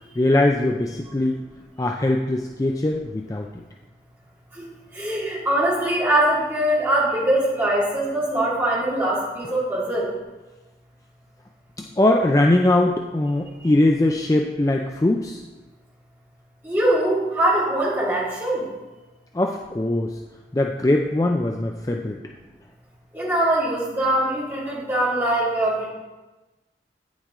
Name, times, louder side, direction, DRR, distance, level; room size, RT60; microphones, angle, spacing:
voice 1, 0.2-1.4 1.8-3.5 11.8-15.4 19.3-20.2 20.5-22.2, left 1 dB, 20° left, 2 dB, 0.4 m, -21 dB
voice 2, 4.9-10.1 16.6-18.6 23.1-25.9, right 1 dB, 15° right, -8 dB, 2.6 m, -22 dB
9.3 x 7.1 x 3.8 m, 1.2 s
head